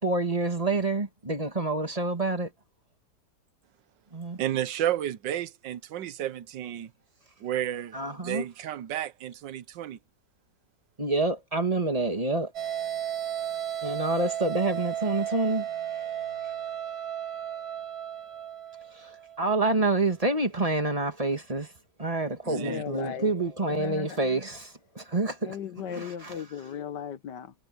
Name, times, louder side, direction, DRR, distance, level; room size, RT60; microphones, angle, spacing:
voice 1, 0.0-2.5 4.1-4.4 7.9-8.4 11.0-12.5 13.8-15.7 18.9-21.7 22.0-25.6 25.9-26.4, right 2 dB, 20° right, 2.4 m, -28 dB
voice 2, 4.4-6.9 7.4-10.0 22.5-22.8, right 11 dB, 90° right, 1.6 m, -32 dB
sound 1, 12.5-19.5, right 10 dB, 60° right, 2.4 m, -34 dB
voice 3, 22.5-23.3 23.7-24.2 25.4-27.5, left 8 dB, 75° left, 1.7 m, -37 dB
omnidirectional pair, 1.9 m